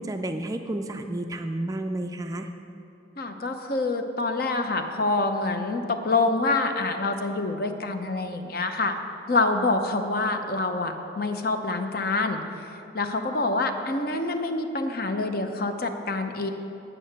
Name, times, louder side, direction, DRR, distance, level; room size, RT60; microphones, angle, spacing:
voice 1, 0.0-2.5, right 1 dB, 15° right, 6 dB, 0.3 m, -31 dB
voice 2, 3.2-9.0 9.3-12.4 12.9-16.5, left 3 dB, 50° left, 6 dB, 0.7 m, -26 dB
8.8 x 8.5 x 6.5 m, 3.0 s
head